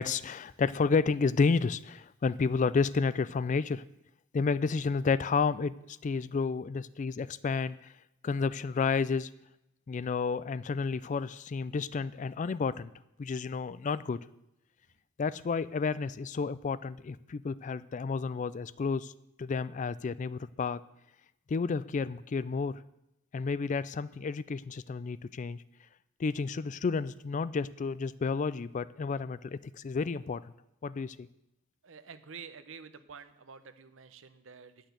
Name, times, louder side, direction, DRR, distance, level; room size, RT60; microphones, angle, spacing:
voice 1, 0.0-3.8 4.3-7.9 8.2-9.3 9.9-12.9 13.2-14.2 15.2-19.1 19.4-20.8 21.5-22.8 23.3-25.6 26.2-30.5 30.8-31.3, left 4 dB, 40° left, 17 dB, 0.3 m, -31 dB
voice 2, 31.8-34.9, right 5 dB, 75° right, 11 dB, 0.8 m, -49 dB
10.0 x 6.3 x 8.0 m, 0.86 s
head